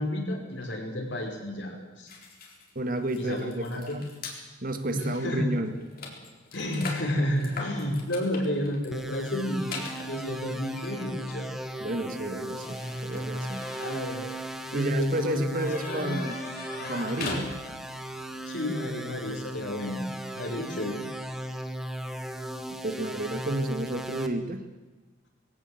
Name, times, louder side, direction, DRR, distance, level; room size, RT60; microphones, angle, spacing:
voice 1, 0.0-2.1 3.2-4.0 4.9-5.5 6.5-9.8 10.1-11.5 13.8-14.3 14.7-16.2 16.7-17.2 18.4-20.0 20.4-21.0, left 1 dB, 65° left, 1 dB, 5.3 m, -31 dB
sound 1, 2.1-4.4 5.1-5.3 5.5-18.0, left 3 dB, 50° left, 4.2 m, -42 dB
voice 2, 2.8-4.0 4.6-5.7 11.8-13.6 14.7-16.4 16.9-17.5 22.8-24.6, right 1 dB, 45° right, 8 dB, 1.9 m, -31 dB
sound 2, 8.9-24.3, right 1 dB, ahead, 1.5 m, -37 dB
21.0 x 17.0 x 7.9 m, 1.2 s
head